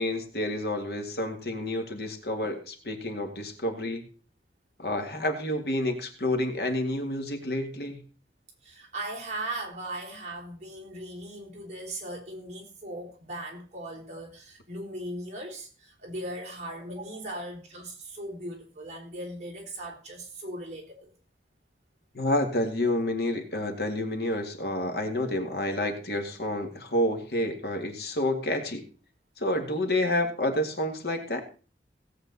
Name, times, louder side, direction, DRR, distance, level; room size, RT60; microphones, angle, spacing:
voice 1, 0.0-4.0 4.8-8.0 22.1-28.9 29.4-31.4, left 1 dB, 65° left, 5 dB, 2.1 m, -29 dB
voice 2, 8.6-21.1, right 1 dB, 40° right, -1 dB, 3.8 m, -38 dB
17.5 x 7.9 x 4.1 m, 0.37 s
head